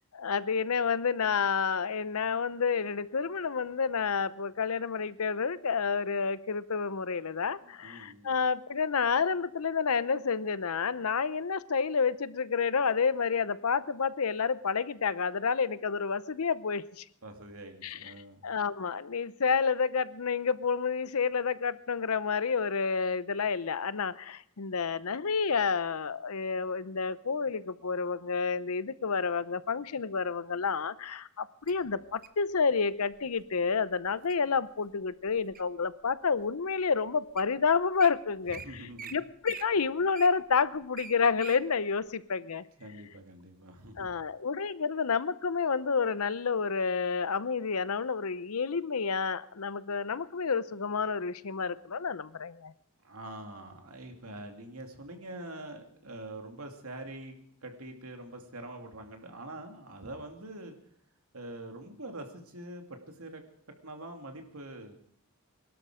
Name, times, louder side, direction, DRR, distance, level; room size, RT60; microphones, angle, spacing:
voice 1, 0.1-17.0 17.8-18.1 18.4-38.8 39.1-42.6 44.0-52.7, left 5 dB, 80° left, 16 dB, 0.7 m, -29 dB
voice 2, 7.6-8.3 17.2-18.4 38.6-39.1 42.8-44.1 53.0-57.3 57.6-60.7 61.3-63.4 63.8-65.0, right 1 dB, 75° right, 4 dB, 2.7 m, -44 dB
Wild animals, 31.7-32.4 33.1-33.4 33.9-34.4 34.9-35.8 36.4-36.5 37.1-37.2 37.4-37.5 37.8-38.1 38.5-38.7 39.0-39.1 39.4-41.6 42.1-42.2, right 7 dB, 40° right, 1.0 m, -44 dB
22.5 x 12.5 x 5.0 m, 0.63 s
head